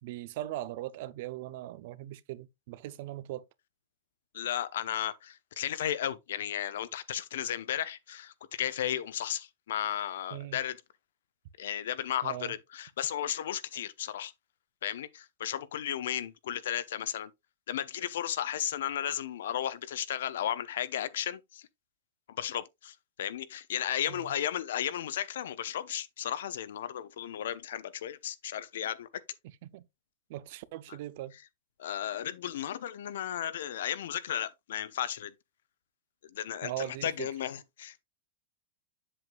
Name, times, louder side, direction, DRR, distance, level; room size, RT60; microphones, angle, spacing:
voice 1, 0.0-3.4 10.3-10.6 12.2-12.5 24.1-24.3 29.6-29.8 30.3-31.3 36.6-37.3, right 14 dB, 50° right, 0.6 m, -40 dB
voice 2, 4.3-10.8 11.6-14.3 14.8-17.3 17.7-21.7 22.3-29.2 30.9-31.0 31.8-35.3 36.3-38.0, left 10 dB, 80° left, 0.8 m, -34 dB
7.9 x 7.7 x 2.3 m
supercardioid pair, 165°, 0 cm